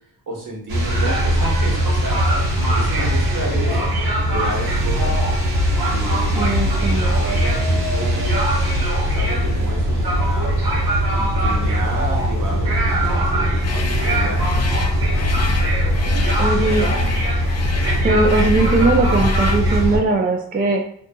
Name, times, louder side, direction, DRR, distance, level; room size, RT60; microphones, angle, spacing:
voice 1, 0.3-2.2 2.5-3.9 4.2-5.1 5.9-8.3 9.0-10.6 11.1-14.8 15.8-16.7 18.0-18.2, right 2 dB, 60° right, -2 dB, 1.0 m, -31 dB
sound 1, 0.7-20.0, equal, 85° right, 0.8 m, -20 dB
voice 2, 6.4-7.1 16.4-16.9 18.0-20.9, right 3 dB, 25° right, 2 dB, 0.4 m, -19 dB
sound 2, 13.6-19.7, left 4 dB, 45° left, 0.4 m, -30 dB
2.6 x 2.6 x 2.2 m, 0.66 s
cardioid pair, 60°, 36 cm